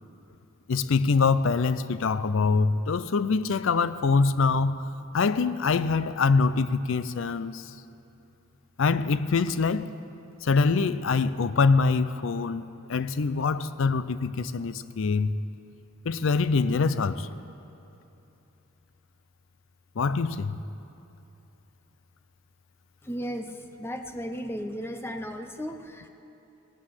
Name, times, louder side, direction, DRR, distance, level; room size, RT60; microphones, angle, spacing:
voice 1, 0.7-4.8 5.1-7.7 8.8-9.9 10.4-15.3 16.0-17.3 20.0-20.6, left 4 dB, 65° left, 0.5 m, -24 dB
voice 2, 23.0-26.1, equal, 10° left, 0.6 m, -35 dB
17.5 x 8.7 x 7.6 m
head